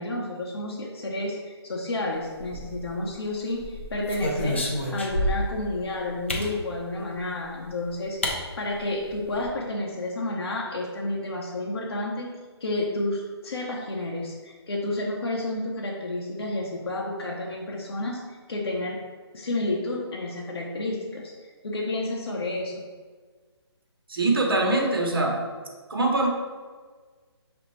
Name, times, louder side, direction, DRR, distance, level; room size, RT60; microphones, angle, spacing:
voice 1, 0.0-12.3 12.6-18.2 18.5-19.0 19.3-22.8, left 2 dB, 60° left, -2 dB, 0.7 m, -31 dB
sound 1, 2.4-3.1 3.6-5.6 6.3-6.5 7.6-7.7 8.2-8.4 8.7-8.8 9.1-9.5, left 1 dB, 25° left, 0.4 m, -29 dB
voice 2, 24.1-25.4 25.9-26.3, right 2 dB, 55° right, 1 dB, 0.9 m, -23 dB
6.2 x 2.5 x 3.1 m, 1.5 s
hypercardioid pair, 175°, 14 cm